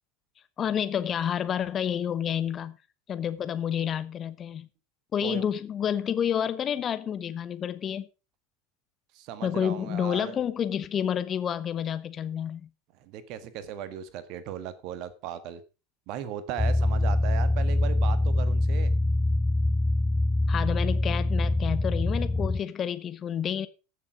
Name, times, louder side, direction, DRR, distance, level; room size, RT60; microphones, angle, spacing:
voice 1, 0.6-2.8 3.1-4.7 5.1-8.1 9.4-12.7 20.5-23.7, left 9 dB, 30° left, 0.9 m, -29 dB
voice 2, 9.1-10.4 13.0-15.6 16.1-18.9, right 10 dB, 50° right, 1.6 m, -37 dB
sound 1, 16.6-22.6, left 2 dB, 15° left, 0.5 m, -24 dB
14.5 x 6.9 x 5.1 m
figure-of-eight pair, 80°, 0 cm